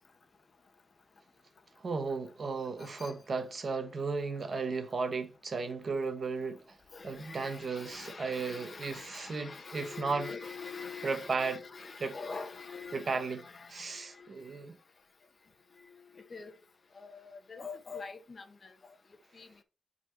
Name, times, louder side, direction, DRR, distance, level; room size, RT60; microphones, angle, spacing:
voice 1, 1.8-6.8 7.0-10.3 11.0-11.6 12.0-12.2 12.9-14.8, right 4 dB, 50° right, 1.1 m, -35 dB
voice 2, 2.8-3.1 6.9-13.8 14.2-14.3 16.3-16.5 17.0-18.7 19.3-19.5, left 4 dB, 45° left, 1.1 m, -44 dB
7.9 x 4.2 x 4.3 m
wide cardioid pair, 165°, 0 cm